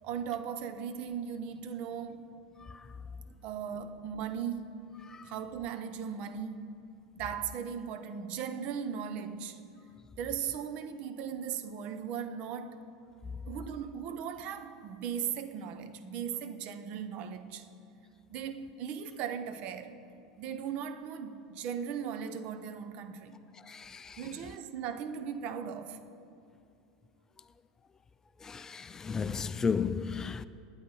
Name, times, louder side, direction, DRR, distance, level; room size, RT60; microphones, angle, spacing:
voice 1, 0.0-2.3 3.4-4.7 5.2-6.8 7.2-9.6 10.2-12.8 13.5-17.7 18.3-20.0 20.4-23.4 24.2-26.0, right 7 dB, 55° right, 0.9 m, -38 dB
voice 2, 23.7-24.2 28.4-30.5, left 5 dB, 20° left, 0.3 m, -33 dB
19.0 x 9.7 x 4.1 m
hypercardioid pair, 100°, 2 cm